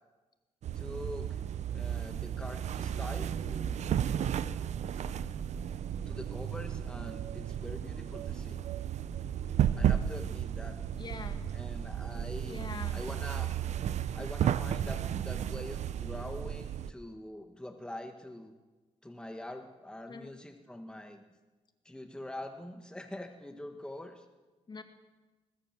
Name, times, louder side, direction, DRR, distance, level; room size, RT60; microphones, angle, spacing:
sound 1, 0.6-16.9, right 9 dB, 70° right, 0.8 m, -33 dB
voice 1, 0.7-1.4 1.7-4.0 4.9-5.0 6.1-8.6 9.8-10.8 11.5-12.6 12.9-13.5 14.1-18.5 19.0-21.2 21.8-24.2, left 1 dB, 5° left, 5 dB, 1.7 m, -44 dB
voice 2, 11.0-11.5 12.4-13.0 20.1-20.3 24.7-24.8, left 4 dB, 40° left, 7 dB, 2.2 m, -43 dB
21.0 x 20.5 x 7.6 m, 1.2 s
cardioid pair, 105°, 12 cm